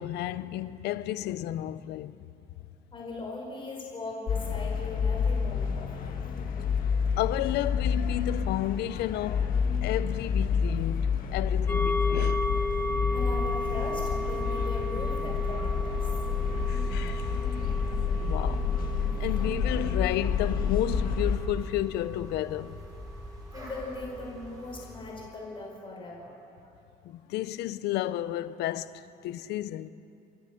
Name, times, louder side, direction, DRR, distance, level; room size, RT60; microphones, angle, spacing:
voice 1, 0.0-2.2 7.2-12.5 16.7-17.4 18.2-18.7 19.2-22.8 27.0-29.9, left 13 dB, 80° left, 0.7 m, -32 dB
voice 2, 2.9-6.7 13.1-16.1 23.5-26.3, left 2 dB, 30° left, 5.1 m, -40 dB
sound 1, 4.3-21.4, left 6 dB, 55° left, 1.8 m, -29 dB
sound 2, 11.7-23.3 23.7-23.8, left 1 dB, 10° left, 1.1 m, -35 dB
sound 3, 13.6-25.0, right 1 dB, 20° right, 6.9 m, -46 dB
30.0 x 11.0 x 7.8 m
cardioid pair, 110°, 17 cm